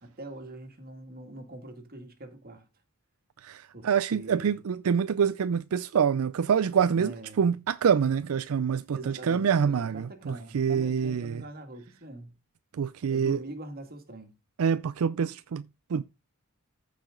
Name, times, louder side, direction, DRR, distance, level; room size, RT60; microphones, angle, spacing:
voice 1, 0.0-2.7 3.7-4.5 6.9-7.5 8.9-12.3 13.1-14.3, right 1 dB, 45° right, 2.0 m, -43 dB
voice 2, 3.4-11.4 12.7-13.4 14.6-16.0, right 7 dB, 80° right, 0.4 m, -26 dB
14.5 x 5.0 x 3.7 m
head